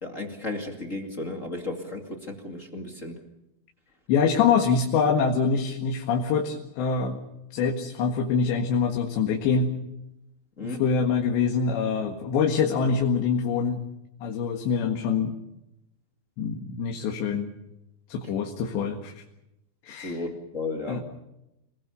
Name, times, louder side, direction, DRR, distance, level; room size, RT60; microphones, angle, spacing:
voice 1, 0.0-3.2 10.6-10.8 20.0-21.0, left 2 dB, 25° left, 3 dB, 1.7 m, -34 dB
voice 2, 4.1-7.2 7.5-9.7 10.6-13.8 14.2-15.4 16.4-17.5 18.1-19.1 19.8-20.2 20.9-21.0, left 5 dB, 85° left, 2 dB, 4.1 m, -25 dB
27.5 x 20.0 x 7.0 m, 0.89 s
omnidirectional pair, 4.9 m